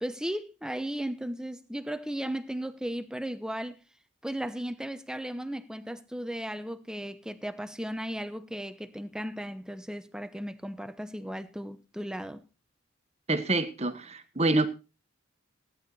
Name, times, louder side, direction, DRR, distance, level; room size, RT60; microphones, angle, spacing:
voice 1, 0.0-3.8 4.2-12.5, equal, 5° right, 0.9 m, -36 dB
voice 2, 13.3-14.7, right 2 dB, 30° right, 1.5 m, -26 dB
17.0 x 10.5 x 4.1 m
head